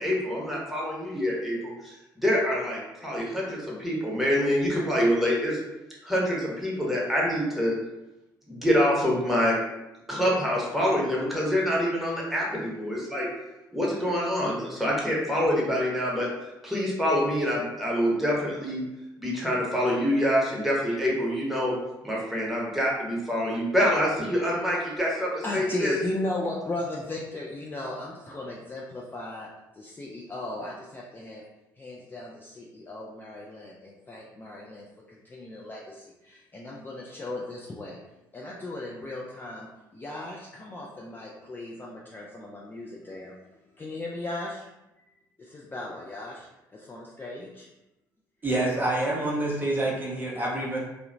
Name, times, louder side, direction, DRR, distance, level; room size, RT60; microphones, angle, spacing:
voice 1, 0.0-5.6 6.0-7.8 8.5-9.6 10.1-13.3 13.7-16.3 16.6-18.8 19.2-21.7 22.0-25.9, equal, ahead, -5 dB, 1.0 m, -26 dB
voice 2, 25.4-29.5 29.8-31.4 31.8-38.0 38.3-39.7 39.9-43.4 43.8-44.7 45.0-45.1 45.4-47.7 48.6-48.7, left 2 dB, 20° left, -4 dB, 0.4 m, -36 dB
voice 3, 48.4-50.8, right 2 dB, 20° right, -4 dB, 0.6 m, -27 dB
2.7 x 2.1 x 2.5 m, 0.95 s
figure-of-eight pair, 50°, 11 cm